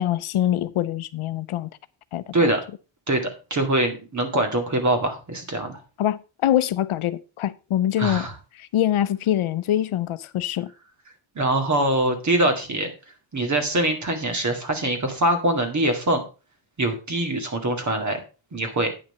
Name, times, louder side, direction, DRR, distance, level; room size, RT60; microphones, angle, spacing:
voice 1, 0.0-1.7 2.1-2.5 6.0-8.3 8.6-10.7, left 12 dB, 80° left, 0.7 m, -24 dB
voice 2, 3.1-5.8 8.0-8.3 11.4-12.9 13.3-16.2 16.8-18.2 18.5-18.9, right 1 dB, 35° right, 2.0 m, -23 dB
9.4 x 5.8 x 5.5 m
wide cardioid pair, 175°, 50 cm